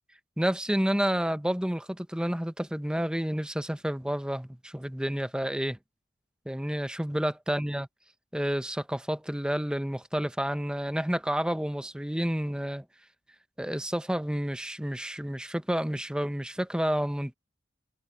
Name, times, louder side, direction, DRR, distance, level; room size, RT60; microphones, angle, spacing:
voice 1, 0.4-5.8 6.5-7.9 8.3-12.8 13.6-17.3, equal, 5° right, 0.8 m, -30 dB
head